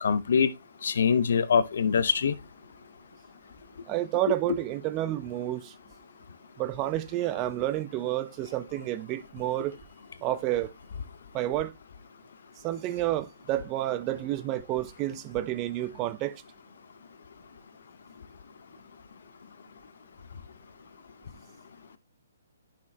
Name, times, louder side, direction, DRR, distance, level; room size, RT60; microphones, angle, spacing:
voice 1, 0.0-0.5 0.8-2.3, left 6 dB, 60° left, 0.7 m, -23 dB
voice 2, 3.9-5.7 6.6-9.8 10.2-10.7 11.3-11.7 12.6-16.4, right 14 dB, 25° right, 0.6 m, -30 dB
11.5 x 5.9 x 2.2 m
figure-of-eight pair, 130°, 0 cm